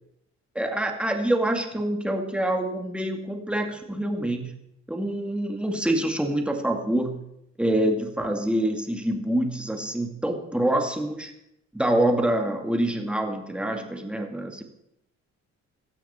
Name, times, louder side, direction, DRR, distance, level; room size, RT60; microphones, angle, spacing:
voice 1, 0.5-4.5 4.9-7.2 7.6-11.3 11.7-14.6, right 1 dB, 5° right, 3 dB, 2.3 m, -26 dB
17.0 x 12.5 x 4.4 m, 0.81 s
cardioid pair, 90°, 30 cm